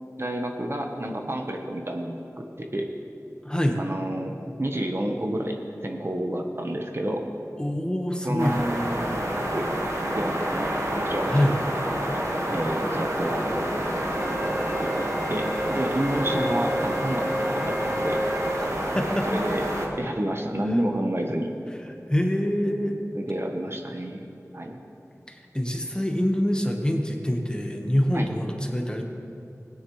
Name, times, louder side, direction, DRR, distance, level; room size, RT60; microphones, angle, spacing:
voice 1, 0.2-2.9 3.8-4.3 4.6-7.2 8.2-9.7 10.1-11.7 12.1-13.7 14.8-18.2 19.3-19.6 20.0-21.5 23.1-24.3 24.5-24.8 28.1-28.3, right 1 dB, 45° right, 2 dB, 1.0 m, -30 dB
voice 2, 3.4-3.8 7.6-8.6 11.2-11.5 18.6-18.7 18.9-19.6 22.1-23.0 25.3-29.0, equal, 15° left, 2 dB, 1.2 m, -25 dB
sound 1, 8.4-19.9, right 1 dB, 60° right, 1.5 m, -28 dB
Wind instrument woodwind instrument, 14.1-18.6, equal, 10° right, 1.1 m, -31 dB
19.0 x 9.8 x 3.1 m, 2.8 s
wide cardioid pair, 50°, 6 cm